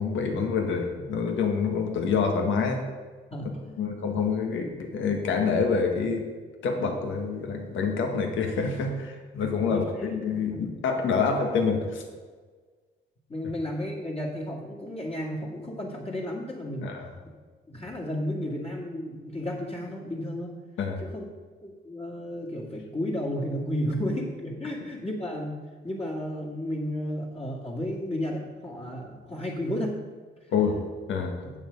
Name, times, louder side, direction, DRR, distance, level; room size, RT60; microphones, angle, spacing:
voice 1, 0.0-2.8 3.8-6.3 6.6-12.0 16.8-17.1 20.8-21.0 30.5-30.8 31.1-31.4, left 5 dB, 75° left, 3 dB, 1.6 m, -27 dB
voice 2, 3.3-3.9 9.6-10.2 13.3-17.0 17.7-20.6 21.0-21.3 21.6-30.0 31.4-31.5, left 1 dB, 30° left, -3 dB, 2.1 m, -33 dB
9.1 x 7.4 x 5.3 m, 1.4 s
cardioid pair, 90°, 20 cm